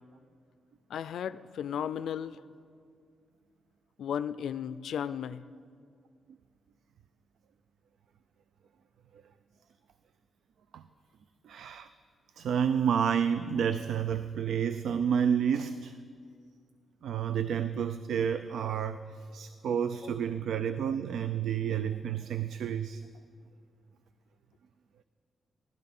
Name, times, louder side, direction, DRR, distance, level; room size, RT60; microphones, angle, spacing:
voice 1, 0.9-2.4 4.0-5.4, left 8 dB, 80° left, 15 dB, 0.4 m, -35 dB
voice 2, 11.4-11.9 12.4-16.0 17.0-23.0, right 8 dB, 80° right, 12 dB, 0.4 m, -30 dB
16.5 x 12.0 x 5.4 m, 2.2 s
wide cardioid pair, 155°, 0 cm